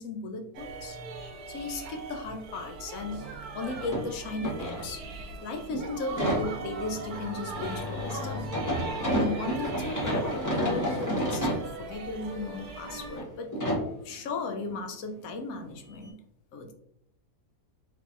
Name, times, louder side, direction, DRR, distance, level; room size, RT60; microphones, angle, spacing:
voice 1, 0.0-5.1 5.4-8.5 9.1-13.5 14.0-16.1 16.5-16.7, left 3 dB, 75° left, 5 dB, 1.0 m, -36 dB
sound 1, 0.5-13.2, right 4 dB, 85° right, 1.1 m, -40 dB
sound 2, 3.1-3.3 3.6-5.3 5.7-11.7 12.3-12.4 13.1-13.3 13.5-13.9 15.6-15.7 16.0-16.1, equal, 20° left, 0.6 m, -31 dB
3.4 x 3.3 x 2.5 m, 0.72 s
omnidirectional pair, 1.6 m